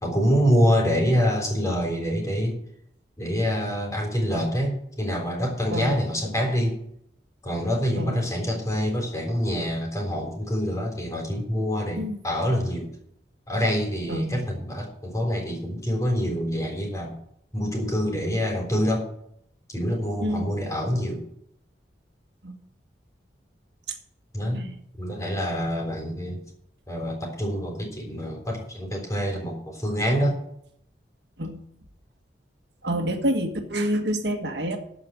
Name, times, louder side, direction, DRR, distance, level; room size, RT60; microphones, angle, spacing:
voice 1, 0.0-2.6 3.2-6.8 7.4-12.9 13.5-17.1 17.5-19.1 19.7-21.2 24.3-24.6 25.0-26.4 26.9-30.4, equal, 20° left, 1 dB, 3.6 m, -26 dB
voice 2, 32.8-34.8, equal, 70° right, 5 dB, 1.6 m, -27 dB
13.5 x 5.2 x 9.0 m, 0.71 s
head